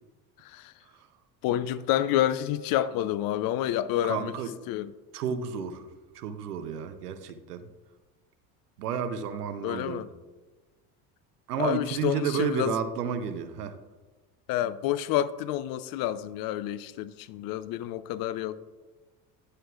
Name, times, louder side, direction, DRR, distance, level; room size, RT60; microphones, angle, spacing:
voice 1, 1.4-4.3 4.7-4.9 9.6-10.1 11.6-12.7 14.5-18.6, left 12 dB, 50° left, 0.5 m, -28 dB
voice 2, 4.0-4.6 5.1-7.7 8.8-10.1 11.5-13.8, right 7 dB, 85° right, 0.7 m, -32 dB
11.0 x 6.5 x 2.4 m
hypercardioid pair, 65°, 45 cm